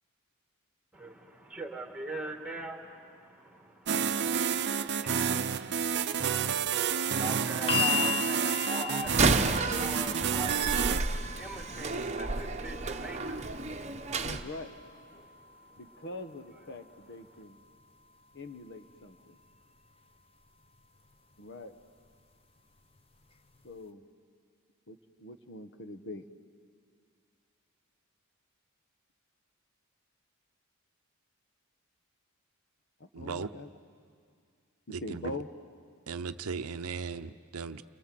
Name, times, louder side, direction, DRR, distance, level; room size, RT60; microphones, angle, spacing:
voice 1, 0.9-10.8 11.4-14.3 15.2-15.8, right 1 dB, 5° right, 4 dB, 2.1 m, -43 dB
sound 1, 3.9-11.0, right 7 dB, 50° right, 0.7 m, -29 dB
sound 2, 7.7-19.8 20.8-20.9, left 8 dB, 25° left, 0.9 m, -39 dB
Slam, 9.0-14.4, right 3 dB, 30° right, 1.0 m, -31 dB
voice 2, 14.2-14.8 15.8-17.6 18.3-19.4 21.4-21.8 23.6-24.1 24.9-26.3 33.0-33.7 34.9-35.5, left 2 dB, 55° left, 9 dB, 1.1 m, -43 dB
voice 3, 33.1-33.5 34.9-35.4 36.1-37.8, right 5 dB, 90° right, 11 dB, 0.7 m, -37 dB
30.0 x 23.5 x 7.6 m, 2.3 s
head